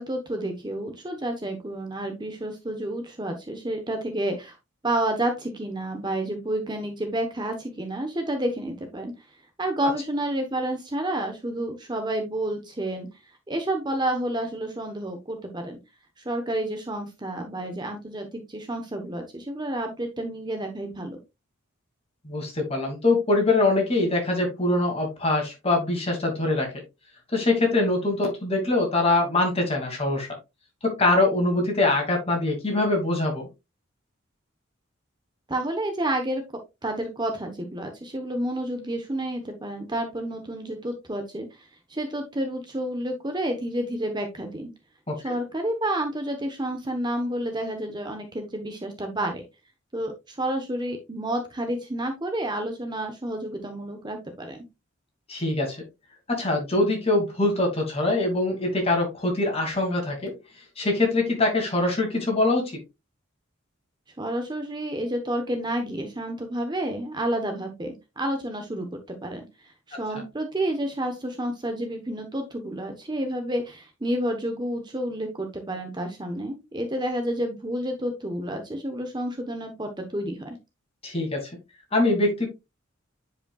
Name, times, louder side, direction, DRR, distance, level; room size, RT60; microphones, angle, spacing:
voice 1, 0.0-4.5 4.8-9.1 9.6-13.1 13.5-15.8 16.2-21.2 35.5-36.4 36.8-44.7 45.2-49.4 49.9-54.6 64.2-69.4 69.9-80.6, right 1 dB, 20° right, 5 dB, 1.0 m, -30 dB
voice 2, 22.2-26.7 27.3-30.3 30.8-33.5 45.1-45.3 55.3-55.8 56.3-60.3 60.8-62.8 81.0-81.4 81.9-82.5, left 2 dB, 30° left, 1 dB, 2.5 m, -23 dB
9.7 x 5.1 x 2.4 m, 0.24 s
head